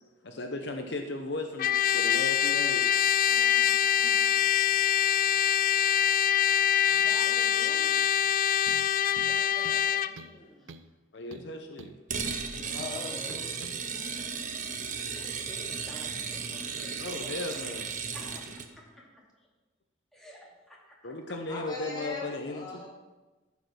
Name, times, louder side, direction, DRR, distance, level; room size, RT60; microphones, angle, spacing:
voice 1, 0.2-2.8 6.9-7.0 11.1-11.9 17.0-17.9 21.0-22.8, left 2 dB, 65° left, 5 dB, 0.8 m, -36 dB
Trumpet, 1.6-10.1, left 10 dB, 45° left, 0.3 m, -24 dB
voice 2, 3.3-4.4 6.9-8.1 8.4-8.6 9.1-10.9 12.5-12.6 15.2-17.3 18.1-19.1 19.4-19.5 20.1-21.1, equal, ahead, -5 dB, 2.6 m, -51 dB
sound 1, 8.7-8.9 9.2-9.9 10.2-10.4 10.7-10.9 11.3-12.5 12.8-13.0 13.3-13.8, right 3 dB, 90° right, 0.6 m, -47 dB
sound 2, 12.1-18.7, right 6 dB, 40° right, 0.9 m, -35 dB
voice 3, 12.6-13.5 18.2-18.4 21.3-22.9, left 3 dB, 20° left, -4 dB, 2.6 m, -40 dB
14.5 x 5.2 x 6.2 m, 1.2 s
head